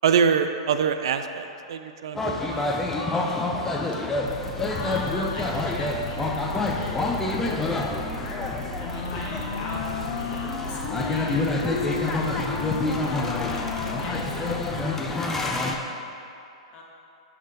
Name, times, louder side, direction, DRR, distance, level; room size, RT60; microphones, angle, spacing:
voice 1, 0.0-2.8, right 7 dB, 65° right, 8 dB, 0.3 m, -24 dB
sound 1, 2.2-15.7, left 2 dB, 10° left, 0.5 m, -28 dB
voice 2, 4.0-4.3 4.7-11.7 12.1-15.6 16.7-16.8, left 2 dB, 35° left, -3 dB, 1.2 m, -41 dB
sound 2, 4.3-14.8, equal, 90° left, 1.1 m, -37 dB
Wind instrument woodwind instrument, 8.8-15.0, left 5 dB, 55° left, 0.6 m, -34 dB
6.3 x 5.7 x 2.7 m, 2.6 s
figure-of-eight pair, 105°, 3 cm